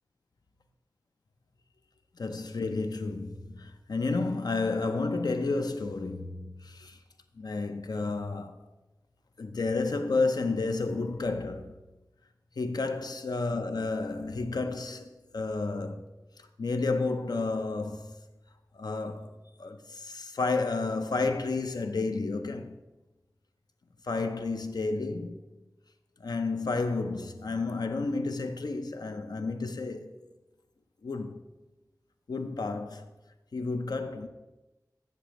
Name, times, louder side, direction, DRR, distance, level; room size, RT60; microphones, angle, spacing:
voice 1, 2.2-7.0 7.4-8.6 9.4-11.8 12.6-16.0 16.4-18.2 18.7-19.3 19.6-22.8 24.0-25.5 26.2-30.2 31.0-31.4 32.3-33.1 33.5-34.3, left 3 dB, 85° left, 0.5 m, -31 dB
7.7 x 6.6 x 3.0 m
wide cardioid pair, 45°, 7 cm